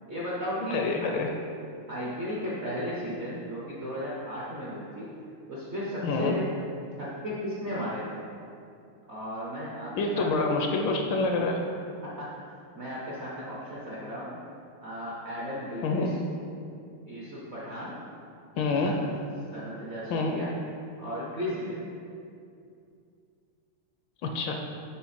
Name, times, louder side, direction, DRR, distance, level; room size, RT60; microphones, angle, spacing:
voice 1, 0.1-1.2 1.9-5.1 5.5-6.4 7.0-8.2 9.1-10.6 12.2-12.3 12.7-14.4 14.8-16.2 17.1-18.0 18.8-19.1 19.5-20.5 21.0-21.9, equal, 55° right, -7 dB, 0.7 m, -35 dB
voice 2, 0.7-1.3 6.0-6.4 10.0-11.6 15.8-16.1 18.6-18.9 20.1-20.3 24.2-24.5, left 3 dB, 75° left, 2 dB, 1.2 m, -27 dB
5.7 x 4.6 x 4.2 m, 2.5 s
omnidirectional pair, 2.3 m